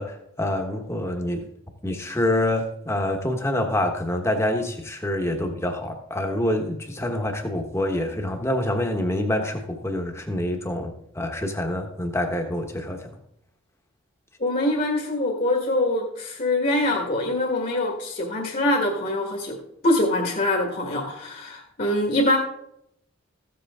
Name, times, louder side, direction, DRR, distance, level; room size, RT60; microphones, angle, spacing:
voice 1, 0.0-1.4 1.8-13.1, left 1 dB, 15° left, 4 dB, 1.2 m, -26 dB
voice 2, 14.4-22.4, left 1 dB, 45° left, -1 dB, 1.6 m, -24 dB
15.0 x 7.7 x 3.7 m, 0.77 s
head